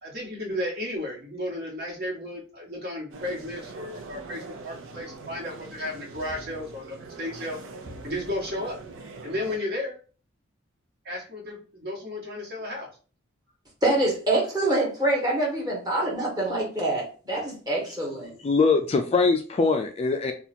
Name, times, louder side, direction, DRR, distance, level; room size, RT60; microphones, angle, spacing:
voice 1, 0.0-7.6 8.0-8.8 9.2-9.9 11.0-12.9, left 1 dB, 50° right, -3 dB, 1.4 m, -33 dB
sound 1, 3.1-9.6, right 3 dB, 75° right, 0.6 m, -42 dB
voice 2, 13.8-18.3, right 1 dB, 20° right, -4 dB, 1.4 m, -25 dB
voice 3, 18.4-20.3, left 4 dB, 30° left, 5 dB, 0.3 m, -22 dB
2.8 x 2.3 x 4.2 m, 0.38 s
head